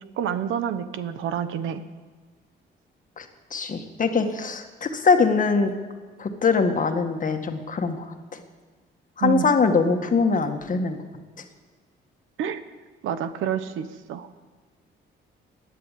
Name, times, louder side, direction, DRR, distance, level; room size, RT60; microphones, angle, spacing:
voice 1, 0.2-1.8 9.2-9.5 12.4-12.6 13.0-14.3, right 9 dB, 85° right, 11 dB, 1.1 m, -28 dB
voice 2, 3.5-5.7 6.2-8.4 9.2-11.0, left 4 dB, 40° left, 6 dB, 1.8 m, -22 dB
17.5 x 10.0 x 7.5 m, 1.4 s
cardioid pair, 90°, 20 cm